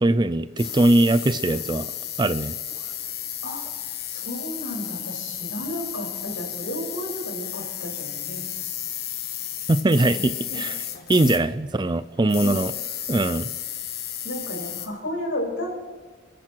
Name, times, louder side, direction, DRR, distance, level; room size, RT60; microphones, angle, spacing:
voice 1, 0.0-1.9 2.2-2.6 9.7-10.8 11.1-12.7 13.1-13.5, right 2 dB, 25° right, 14 dB, 0.5 m, -21 dB
sound 1, 0.6-11.5 12.2-14.9, left 11 dB, 55° left, 1.3 m, -33 dB
voice 2, 4.0-8.5 10.5-10.6 12.4-12.6 14.2-15.7, left 1 dB, 80° left, -2 dB, 6.2 m, -32 dB
28.0 x 10.5 x 4.7 m, 1.4 s
head